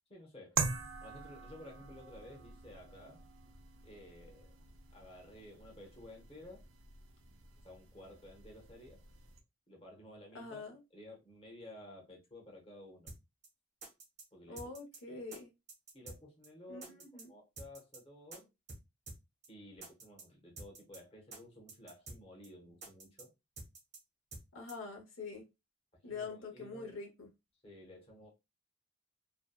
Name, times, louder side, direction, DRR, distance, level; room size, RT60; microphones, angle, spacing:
voice 1, 0.1-0.6 1.0-3.2 3.8-4.5 4.9-6.6 7.6-9.0 9.7-10.6 10.9-13.1 14.3-14.7 15.1-15.2 15.9-18.5 19.5-23.3 26.1-26.9 27.6-28.3, left 1 dB, 30° left, 0.8 m, -54 dB
sound 1, 0.6-9.4, right 5 dB, 85° right, 0.5 m, -44 dB
voice 2, 10.3-10.8 14.5-15.5 16.7-17.3 24.5-25.4 26.0-27.3, left 4 dB, 85° left, 0.7 m, -45 dB
sound 2, 13.1-13.2 13.4-13.5 13.8-14.2 14.6-15.0 15.3-15.4 15.7-16.2 16.4-16.5 16.8-17.2 17.6-18.0 18.3-18.4 18.7-18.8 19.1-19.2 19.4-19.5 19.8-20.2 20.6-21.0 21.3-21.4 21.7-22.2 22.4-22.5 22.8-23.2 23.6-24.0 24.3-24.4 24.7-24.8, right 2 dB, 35° right, 0.6 m, -49 dB
2.6 x 2.1 x 2.2 m
head